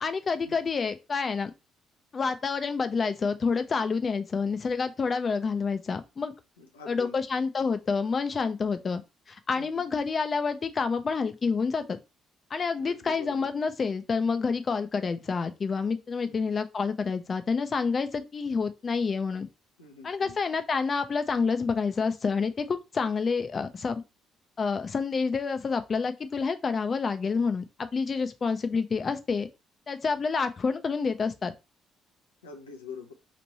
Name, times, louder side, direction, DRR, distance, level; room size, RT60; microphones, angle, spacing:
voice 1, 0.0-1.5 2.1-6.3 6.9-9.0 9.3-12.0 12.5-19.5 20.0-24.0 24.6-29.5 29.9-31.5, left 5 dB, 40° left, 0.5 m, -28 dB
voice 2, 6.6-7.2 9.6-9.9 12.7-13.5 16.2-16.6 19.8-20.4 32.4-33.1, left 5 dB, 85° left, 0.6 m, -45 dB
3.1 x 2.6 x 4.1 m
figure-of-eight pair, 45°, 0 cm